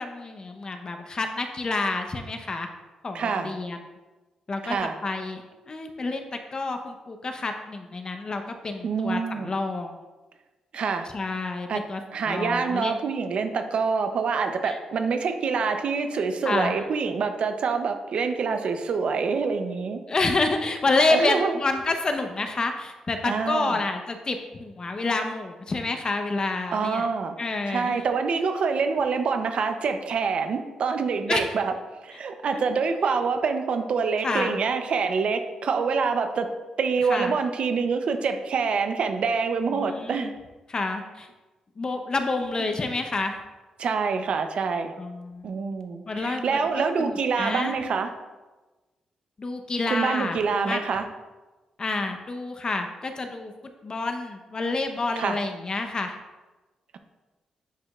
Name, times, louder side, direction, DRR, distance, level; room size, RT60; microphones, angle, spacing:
voice 1, 0.0-2.7 3.0-3.8 4.5-4.8 5.0-6.3 6.5-9.9 11.1-13.0 14.6-14.8 16.4-16.8 20.1-27.1 27.4-28.0 31.3-31.5 32.5-32.6 34.2-34.6 37.1-37.4 39.7-40.3 40.7-41.3 41.8-43.4 45.0-45.6 46.1-47.7 49.4-50.8 51.8-53.5 53.8-56.2, left 3 dB, 40° left, 5 dB, 0.8 m, -28 dB
voice 2, 3.1-3.5 4.6-5.0 8.8-9.5 10.7-11.1 11.7-11.8 12.1-20.0 21.1-21.6 23.2-23.8 26.7-27.3 27.7-31.7 32.0-36.5 36.8-40.3 43.8-44.9 45.4-48.1 49.9-51.0 55.2-55.4, right 5 dB, 65° right, 7 dB, 0.7 m, -26 dB
10.0 x 5.0 x 2.4 m, 1.2 s
cardioid pair, 75°, 2 cm